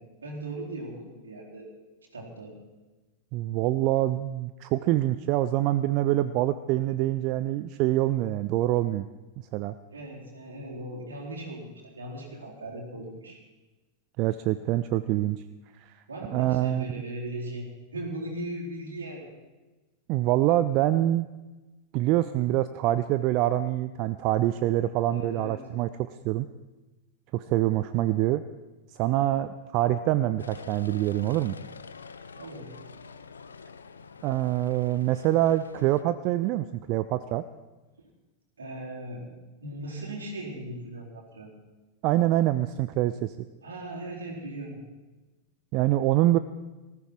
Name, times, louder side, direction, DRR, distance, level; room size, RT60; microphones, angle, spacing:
voice 1, 0.0-1.7 2.1-2.5 9.9-13.4 16.1-19.3 24.8-25.7 32.3-32.8 38.6-39.3 39.6-41.5 43.6-44.8, right 1 dB, 70° right, -2 dB, 3.9 m, -38 dB
voice 2, 3.3-9.1 9.5-9.7 14.2-15.4 15.8-15.9 16.3-17.0 20.1-21.3 21.9-26.5 27.3-28.4 28.9-31.5 34.2-37.4 42.0-43.3 45.7-46.4, right 14 dB, 40° right, 13 dB, 0.5 m, -25 dB
sound 1, 30.4-36.0, left 5 dB, 75° left, 0.7 m, -46 dB
19.5 x 14.5 x 4.5 m, 1.2 s
figure-of-eight pair, 90°, 0 cm